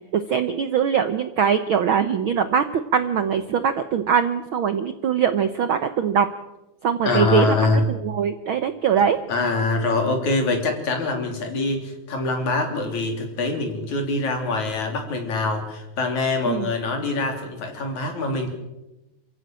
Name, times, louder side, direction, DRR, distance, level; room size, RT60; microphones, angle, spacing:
voice 1, 0.1-2.6 2.9-6.3 6.8-7.6 7.9-9.2 16.5-16.7, right 7 dB, 70° right, 10 dB, 1.2 m, -22 dB
voice 2, 7.0-7.8 9.3-18.5, left 3 dB, 70° left, 4 dB, 4.7 m, -24 dB
28.5 x 15.5 x 7.6 m, 0.99 s
omnidirectional pair, 3.5 m